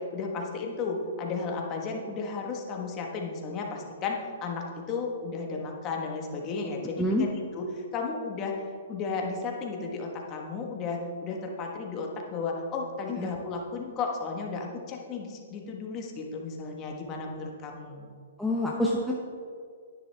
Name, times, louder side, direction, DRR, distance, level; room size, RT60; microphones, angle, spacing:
voice 1, 0.0-7.3 7.6-8.6 8.9-18.1, left 4 dB, 25° left, 1 dB, 1.4 m, -34 dB
voice 2, 18.4-19.1, left 1 dB, ahead, -4 dB, 0.8 m, -26 dB
10.5 x 10.0 x 3.5 m, 2.1 s
hypercardioid pair, 155°, 0 cm